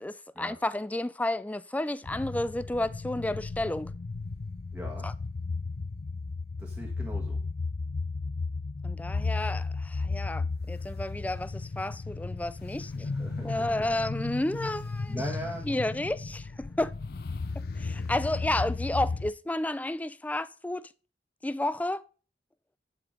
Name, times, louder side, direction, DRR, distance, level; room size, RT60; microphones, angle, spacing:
voice 1, 0.0-3.9 5.0-5.1 8.8-12.9 13.4-15.2 15.7-16.9 17.8-20.9 21.4-22.0, left 1 dB, 10° left, 0.3 m, -31 dB
sound 1, 2.0-19.3, left 3 dB, 55° left, 0.5 m, -34 dB
voice 2, 4.7-5.1 6.6-7.4 12.9-13.6 15.1-15.7, equal, 5° right, 1.4 m, -40 dB
10.5 x 5.0 x 5.1 m
head